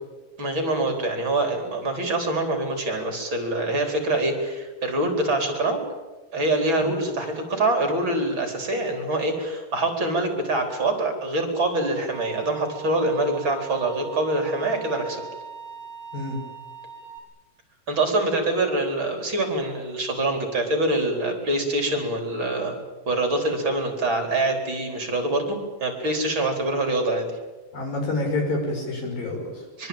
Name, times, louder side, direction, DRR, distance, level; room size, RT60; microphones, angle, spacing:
voice 1, 0.4-5.9 6.3-15.2 17.9-22.7 23.1-27.3 29.8-29.9, right 2 dB, 35° right, 4 dB, 4.8 m, -25 dB
Bowed string instrument, 12.1-17.2, right 7 dB, 40° left, 6.6 m, -40 dB
voice 2, 27.7-29.6, left 2 dB, 80° left, 2 dB, 7.9 m, -28 dB
24.0 x 24.0 x 8.9 m, 1.2 s
omnidirectional pair, 4.0 m